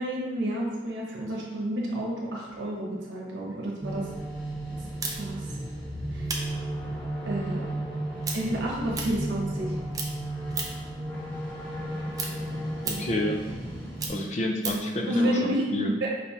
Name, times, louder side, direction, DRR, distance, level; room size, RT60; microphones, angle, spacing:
voice 1, 0.0-4.1 5.2-5.4 6.1-6.3 7.2-7.7 8.3-9.8 15.1-15.7 16.0-16.1, right 1 dB, 80° right, -3 dB, 0.9 m, -30 dB
sound 1, 3.8-14.1, right 1 dB, 10° left, 1.1 m, -34 dB
sound 2, 5.0-9.7 9.9-10.9 11.3-14.9, right 4 dB, 20° right, 0.4 m, -36 dB
voice 2, 12.8-13.4 14.1-15.9, left 1 dB, 35° left, 2 dB, 0.5 m, -29 dB
5.2 x 3.5 x 2.8 m, 1.3 s
head